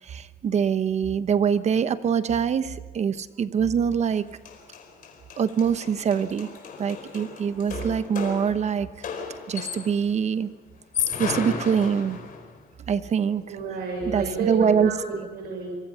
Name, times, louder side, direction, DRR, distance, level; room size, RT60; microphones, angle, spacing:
voice 1, 0.0-4.2 5.4-6.5 6.8-9.1 9.5-10.5 11.2-12.2 12.9-13.6 14.1-14.9, right 7 dB, 45° right, 13 dB, 0.9 m, -24 dB
sound 1, 4.1-4.2 4.5-10.1 10.8-12.6, left 7 dB, 60° left, 4.6 m, -34 dB
voice 2, 13.5-15.8, right 3 dB, 80° right, 1 dB, 5.5 m, -30 dB
25.5 x 23.5 x 5.7 m, 1.4 s
cardioid pair, 140°, 15 cm